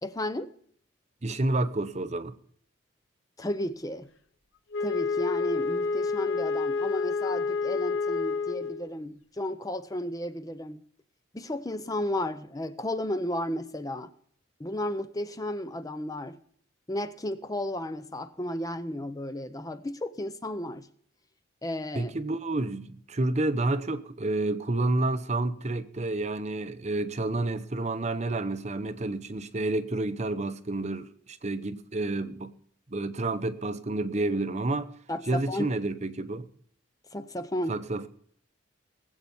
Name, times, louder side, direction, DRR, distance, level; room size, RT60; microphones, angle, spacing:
voice 1, 0.0-0.5 3.4-4.1 4.8-10.8 11.3-14.1 14.6-16.4 16.9-20.9 21.6-22.1 35.1-35.7 37.1-37.8, left 1 dB, 15° left, 0.6 m, -33 dB
voice 2, 1.2-2.4 21.9-32.5 32.9-34.9 35.3-36.5 37.7-38.1, right 2 dB, 35° right, 0.7 m, -29 dB
Wind instrument woodwind instrument, 4.7-8.9, left 4 dB, 65° left, 0.9 m, -29 dB
19.5 x 8.1 x 5.4 m
head